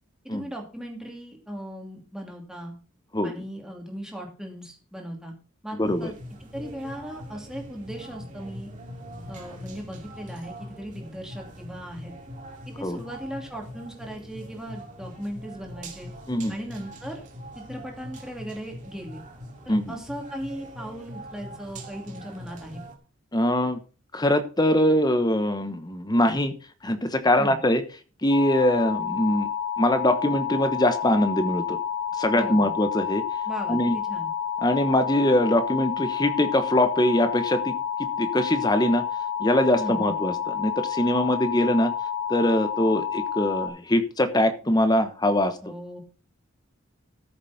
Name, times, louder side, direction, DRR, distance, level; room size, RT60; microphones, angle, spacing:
voice 1, 0.2-2.7 3.2-5.3 5.6-8.7 9.3-12.1 12.7-16.1 16.5-17.2 17.5-19.2 19.6-22.8 27.4-27.6 32.3-32.8 33.5-34.3 39.8-40.1 45.6-46.0, equal, 5° right, 0 dB, 2.7 m, -38 dB
voice 2, 5.8-6.1 12.8-13.0 16.3-16.5 19.7-19.9 23.3-23.8 24.1-26.5 26.8-27.8 28.2-29.5 29.8-31.8 32.2-33.2 33.7-34.0 34.6-39.0 39.4-41.9 42.3-45.6, left 1 dB, 20° left, 9 dB, 1.2 m, -23 dB
sound 1, 5.8-22.9, equal, 35° right, 2.3 m, -42 dB
sound 2, 28.3-43.7, left 8 dB, 80° left, 2.9 m, -29 dB
14.0 x 7.1 x 4.2 m, 0.36 s
head